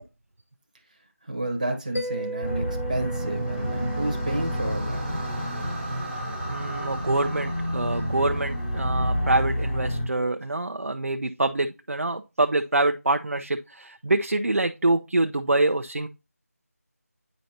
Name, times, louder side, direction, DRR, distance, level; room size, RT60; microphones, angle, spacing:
voice 1, 1.2-5.0, right 1 dB, 30° right, 1.2 m, -30 dB
Mallet percussion, 1.9-5.4, right 1 dB, 60° left, 2.0 m, -36 dB
sound 1, 2.4-10.0, equal, 30° left, 3.1 m, -29 dB
sound 2, 3.1-9.4, right 1 dB, ahead, 0.9 m, -38 dB
voice 2, 6.2-16.1, right 2 dB, 65° right, 0.5 m, -25 dB
8.9 x 5.2 x 2.8 m
figure-of-eight pair, 180°, 8 cm